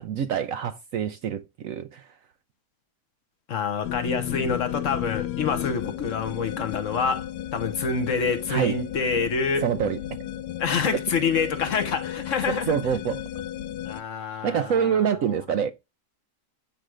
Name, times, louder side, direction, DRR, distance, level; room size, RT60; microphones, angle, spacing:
voice 1, 0.0-2.1 8.5-8.8 9.6-10.0 12.5-13.2 14.4-15.7, right 8 dB, 70° right, 0.9 m, -26 dB
voice 2, 3.5-9.6 10.6-12.7 13.8-15.4, left 5 dB, 55° left, 1.2 m, -27 dB
sound 1, 3.8-14.0, left 12 dB, 80° left, 1.1 m, -34 dB
8.9 x 3.4 x 6.2 m
omnidirectional pair, 1.8 m